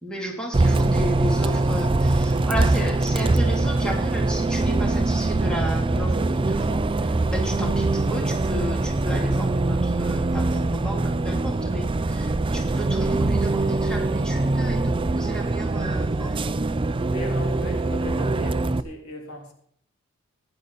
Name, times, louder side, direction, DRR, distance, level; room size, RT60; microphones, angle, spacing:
voice 1, 0.0-16.5, equal, 5° left, 0 dB, 3.0 m, -33 dB
Bus, 0.5-18.8, right 2 dB, 25° right, 0.5 m, -23 dB
voice 2, 17.1-19.5, equal, 85° left, 2 dB, 3.5 m, -37 dB
15.5 x 10.5 x 4.2 m, 0.63 s
head